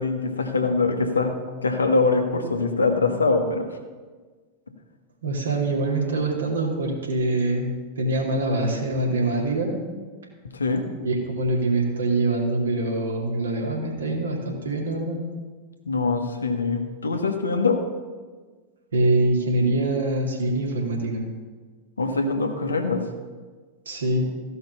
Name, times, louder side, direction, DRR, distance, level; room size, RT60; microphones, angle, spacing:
voice 1, 0.0-1.3 1.6-3.7 10.5-10.9 15.8-17.8 22.0-23.0, left 3 dB, 75° left, 5 dB, 1.2 m, -23 dB
voice 2, 5.2-9.8 11.0-15.2 18.9-21.3 23.9-24.3, right 2 dB, 70° right, -1 dB, 2.4 m, -24 dB
15.0 x 5.6 x 5.5 m, 1.4 s
figure-of-eight pair, 90°, 0 cm